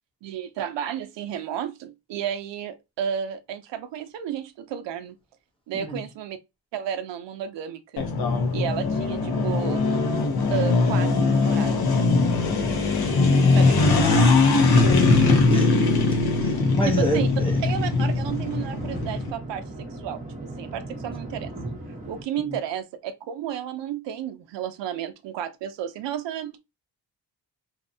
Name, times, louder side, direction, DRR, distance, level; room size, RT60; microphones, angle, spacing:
voice 1, 0.2-5.2 5.7-6.4 6.7-8.0 8.5-9.9 10.5-12.0 13.6-13.7 14.1-14.6 17.0-17.3 17.6-21.5 22.1-26.6, right 9 dB, 85° right, 0.5 m, -32 dB
sound 1, 8.0-19.3, left 3 dB, 60° left, 0.8 m, -21 dB
voice 2, 13.0-13.5 15.5-16.0 16.4-17.6, equal, 15° left, 0.6 m, -29 dB
sound 2, 16.5-22.2, right 2 dB, 20° right, 0.8 m, -36 dB
2.8 x 2.1 x 2.6 m
wide cardioid pair, 130°, 42 cm